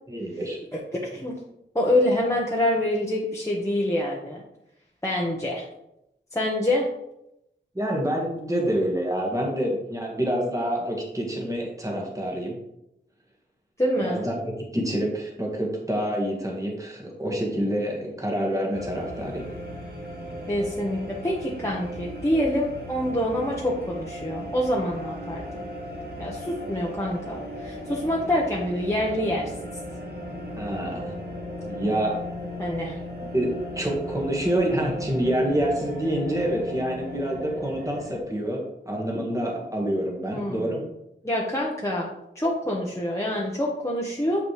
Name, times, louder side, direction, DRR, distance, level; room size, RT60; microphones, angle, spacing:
voice 1, 0.1-0.6 7.7-12.6 14.0-19.5 30.6-31.1 31.7-32.2 33.2-40.9, right 1 dB, 15° right, -1 dB, 1.8 m, -27 dB
voice 2, 0.7-1.4 1.7-4.4 5.0-5.6 6.3-6.9 13.8-14.2 20.5-25.7 26.2-29.5 32.6-33.0 40.3-40.7 41.2-42.1 42.3-44.4, left 1 dB, 15° left, -4 dB, 1.2 m, -26 dB
sound 1, 18.7-38.2, equal, 55° right, 1.7 m, -36 dB
7.4 x 5.9 x 3.3 m, 0.83 s
wide cardioid pair, 70°, 19 cm